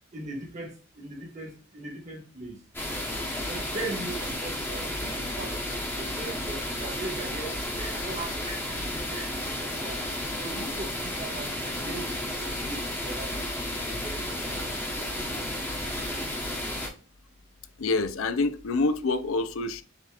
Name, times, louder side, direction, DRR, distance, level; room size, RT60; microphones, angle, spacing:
voice 1, 0.1-2.6 3.5-10.0 10.4-13.4 13.9-14.9, right 2 dB, 35° right, 1.4 m, -40 dB
sound 1, 2.7-16.9, left 1 dB, 10° left, 1.0 m, -32 dB
voice 2, 17.8-19.8, left 3 dB, 80° left, 0.5 m, -26 dB
7.0 x 2.9 x 2.4 m
head